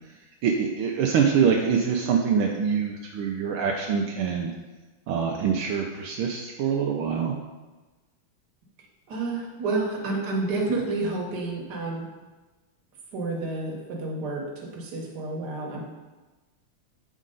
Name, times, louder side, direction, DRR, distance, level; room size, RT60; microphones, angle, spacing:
voice 1, 0.4-4.5 5.1-7.3, right 6 dB, 80° right, 1 dB, 1.4 m, -24 dB
voice 2, 9.1-12.1 13.1-15.8, right 3 dB, 55° right, -1 dB, 1.7 m, -30 dB
7.4 x 5.0 x 3.8 m, 1.2 s
omnidirectional pair, 2.3 m